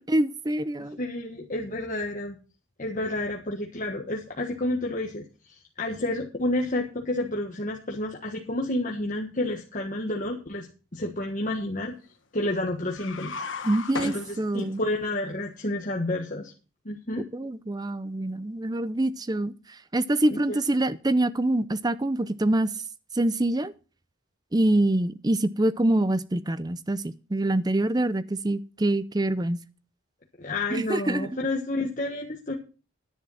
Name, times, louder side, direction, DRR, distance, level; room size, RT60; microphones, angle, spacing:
voice 1, 0.0-1.0 13.6-14.8 17.3-19.5 19.9-22.7 23.1-23.7 24.5-29.6 30.7-31.3, right 1 dB, 20° right, 0.5 m, -25 dB
voice 2, 1.0-2.4 2.8-10.7 10.9-11.9 12.3-13.4 14.0-16.5 16.8-17.2 20.3-20.6 30.4-32.5, left 1 dB, 35° left, 1.4 m, -30 dB
sound 1, 12.9-14.9, left 4 dB, 60° left, 1.3 m, -36 dB
10.5 x 10.5 x 5.6 m
head